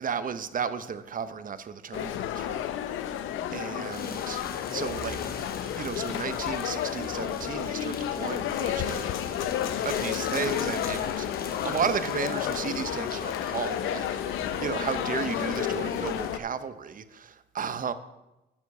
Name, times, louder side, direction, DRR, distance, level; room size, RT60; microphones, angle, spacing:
voice 1, 0.0-3.2 3.5-4.4 4.7-9.6 9.8-17.9, right 6 dB, 45° right, 12 dB, 0.8 m, -34 dB
sound 1, 1.9-16.4, left 10 dB, 80° left, 0.6 m, -31 dB
sound 2, 3.9-16.3, left 5 dB, 50° left, 1.1 m, -40 dB
9.5 x 7.4 x 5.4 m, 0.98 s
cardioid pair, 90°, 20 cm